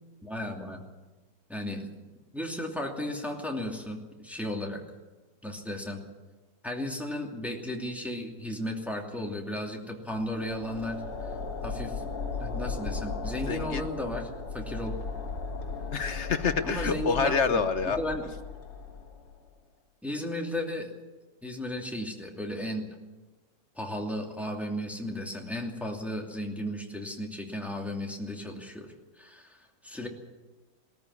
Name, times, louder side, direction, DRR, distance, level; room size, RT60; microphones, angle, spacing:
voice 1, 0.2-0.8 1.5-2.0 2.3-4.8 5.4-6.0 6.6-11.0 11.6-12.0 12.4-14.9 16.6-17.6 18.0-18.3 20.0-20.9 21.4-22.9 23.8-30.1, left 1 dB, ahead, 0 dB, 2.6 m, -35 dB
sound 1, 10.3-19.5, left 4 dB, 90° left, 2.8 m, -36 dB
voice 2, 13.5-13.8 15.9-18.0, left 5 dB, 50° left, 10 dB, 1.0 m, -27 dB
20.0 x 13.5 x 9.7 m, 1.2 s
omnidirectional pair, 1.9 m